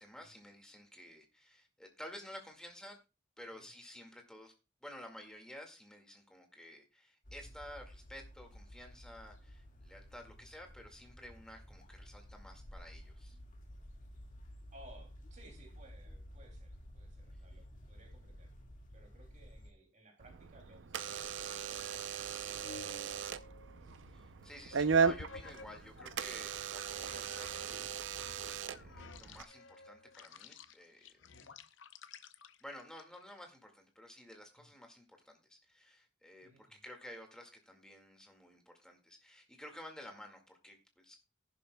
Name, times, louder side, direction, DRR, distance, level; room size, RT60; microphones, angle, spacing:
voice 1, 0.0-3.0 3.4-4.5 4.8-13.4 24.1-31.2 32.6-41.2, left 1 dB, 5° left, 3 dB, 1.9 m, -52 dB
sound 1, 7.2-19.7, equal, 45° left, 1.8 m, -53 dB
voice 2, 14.7-18.5 18.9-21.9 22.5-23.4 23.8-24.2 27.8-27.9 31.3-31.5 34.6-34.7 36.4-36.8, right 1 dB, 40° right, 2 dB, 2.8 m, -61 dB
Door / Alarm, 20.2-29.4, right 6 dB, 80° right, 0.6 m, -37 dB
sound 2, 21.2-26.2 26.7-33.4, left 4 dB, 85° left, 0.7 m, -53 dB
13.5 x 11.0 x 2.2 m, 0.27 s
head